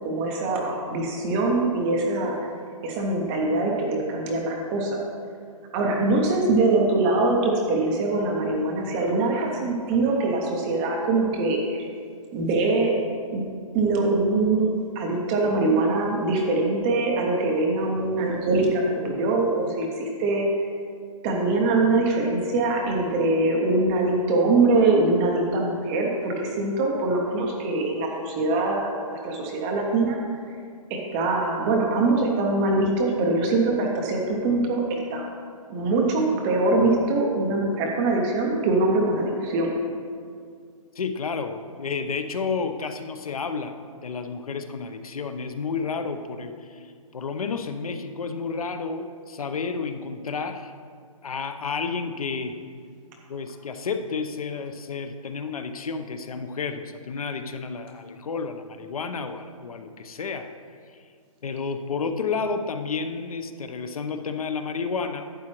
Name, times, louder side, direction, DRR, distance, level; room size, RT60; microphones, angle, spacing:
voice 1, 0.0-2.5 2.8-5.0 5.7-11.9 12.3-12.9 13.3-13.5 13.7-14.7 15.0-20.5 21.2-30.2 30.9-35.3 35.7-39.7, right 2 dB, 10° right, 0 dB, 0.4 m, -23 dB
voice 2, 40.9-43.7 44.0-50.8 51.2-52.6 53.3-60.5 60.9-61.0 61.4-65.3, left 5 dB, 80° left, 8 dB, 0.8 m, -31 dB
11.5 x 8.7 x 3.0 m, 2.2 s
hypercardioid pair, 165°, 18 cm